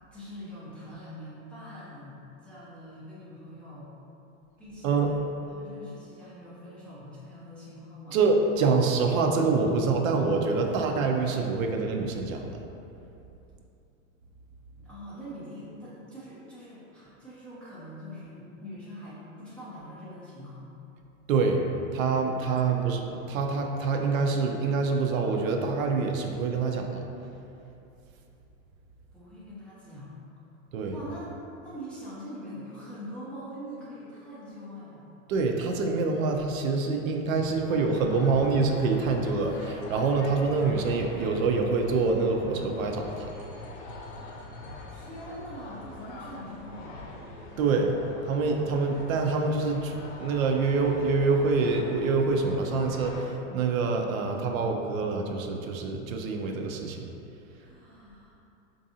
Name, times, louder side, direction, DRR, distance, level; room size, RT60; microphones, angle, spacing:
voice 1, 0.1-3.9 4.6-5.2 5.5-8.2 14.8-20.7 22.6-23.0 29.1-30.2 30.9-31.3 31.6-35.1 44.3-47.0 57.6-58.4, equal, 5° left, -12 dB, 0.4 m, -43 dB
voice 2, 8.1-12.5 21.3-21.6 21.9-27.1 30.7-31.0 35.3-43.3 47.6-48.0 48.2-57.0, right 4 dB, 80° right, 3 dB, 0.6 m, -26 dB
sound 1, 37.6-53.2, left 2 dB, 65° left, 0.7 m, -43 dB
4.6 x 2.5 x 2.7 m, 2.7 s
supercardioid pair, 135°, 40 cm